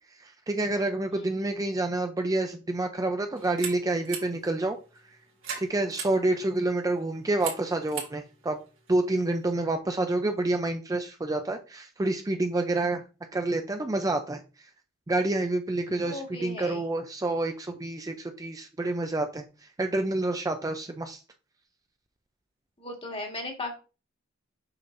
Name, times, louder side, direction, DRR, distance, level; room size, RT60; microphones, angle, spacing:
voice 1, 0.2-4.8 5.6-8.6 8.9-13.0 13.3-14.4 15.1-19.4 19.8-21.2, right 2 dB, 15° right, 6 dB, 0.4 m, -28 dB
sound 1, 3.3-9.6, right 6 dB, 70° right, 2.3 m, -42 dB
voice 2, 16.0-16.8 22.8-23.8, left 2 dB, 25° left, 2 dB, 1.5 m, -36 dB
6.7 x 5.7 x 2.6 m, 0.33 s
head